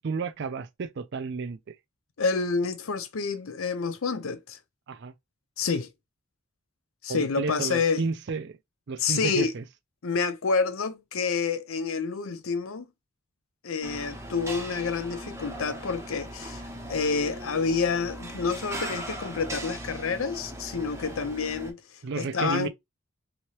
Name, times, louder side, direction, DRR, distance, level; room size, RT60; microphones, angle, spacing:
voice 1, 0.0-1.8 4.9-5.1 7.1-8.6 8.9-9.6 22.0-22.7, right 4 dB, 55° right, 0.4 m, -32 dB
voice 2, 2.2-4.6 5.6-5.9 7.0-8.1 9.0-9.5 10.0-12.9 13.6-16.6 16.9-21.8 22.2-22.7, left 5 dB, 80° left, 0.6 m, -28 dB
sound 1, 13.8-21.7, right 1 dB, 15° right, 0.6 m, -39 dB
2.9 x 2.8 x 3.1 m
head